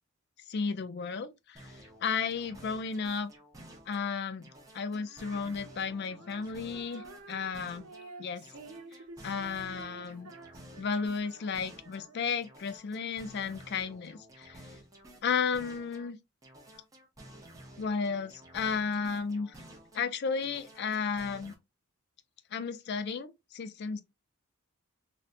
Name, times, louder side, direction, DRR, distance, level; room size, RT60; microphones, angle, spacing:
voice 1, 0.5-3.3 3.9-7.9 8.2-8.5 9.2-10.3 10.8-14.6 15.2-16.2 17.8-19.6 19.9-21.5 22.5-24.0, left 5 dB, 50° left, 0.4 m, -33 dB
sound 1, 1.5-4.1 4.4-8.1 8.4-12.1 12.4-16.1 16.4-20.1 20.4-21.5, right 1 dB, 15° right, 0.7 m, -52 dB
Female singing, 5.0-12.4, right 3 dB, 85° right, 0.7 m, -51 dB
4.0 x 2.1 x 2.5 m
head